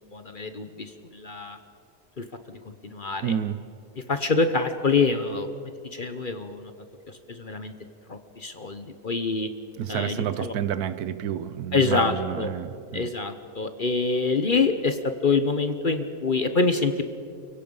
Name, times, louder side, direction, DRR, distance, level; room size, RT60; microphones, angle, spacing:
voice 1, 0.0-1.6 2.2-2.3 2.8-3.3 4.0-5.5 5.9-6.7 7.3-7.7 8.1-9.5 9.9-10.5 11.7-12.5 12.9-17.0, left 4 dB, 40° left, 9 dB, 0.9 m, -26 dB
voice 2, 3.2-3.7 9.8-13.1, right 9 dB, 80° right, 14 dB, 1.3 m, -30 dB
29.5 x 16.5 x 5.5 m, 2.5 s
omnidirectional pair, 1.6 m